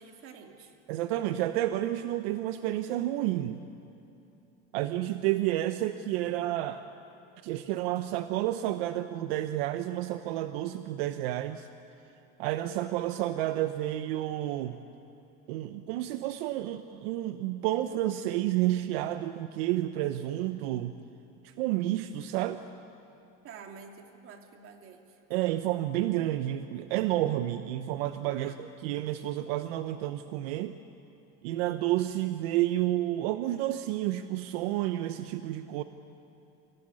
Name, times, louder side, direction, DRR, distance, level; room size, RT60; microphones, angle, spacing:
voice 1, 0.0-0.7 23.4-25.0 28.4-28.6, right 5 dB, 45° right, 3 dB, 2.8 m, -49 dB
voice 2, 0.9-3.6 4.7-6.8 7.4-11.7 12.4-14.8 15.5-20.9 21.4-22.6 25.3-30.8 31.4-35.8, right 14 dB, 80° right, 10 dB, 0.9 m, -30 dB
25.0 x 17.0 x 9.8 m, 3.0 s
supercardioid pair, 130°, 30 cm